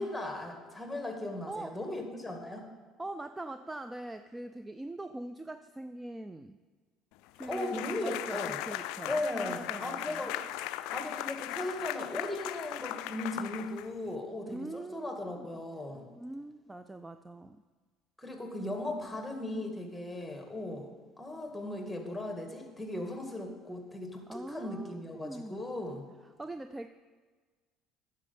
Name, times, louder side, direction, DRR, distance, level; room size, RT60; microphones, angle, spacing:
voice 1, 0.0-2.7 7.5-8.6 9.1-10.4 10.9-16.0 18.2-20.9 21.2-26.1, left 1 dB, 5° left, 3 dB, 2.0 m, -37 dB
voice 2, 3.0-6.6 7.4-8.4 8.7-10.3 14.5-15.6 16.2-17.6 24.3-25.6 26.4-26.9, right 2 dB, 15° right, 10 dB, 0.4 m, -42 dB
sound 1, 7.4-14.1, left 14 dB, 75° left, 0.3 m, -38 dB
9.8 x 6.8 x 5.5 m, 1.4 s
hypercardioid pair, 70°, 0 cm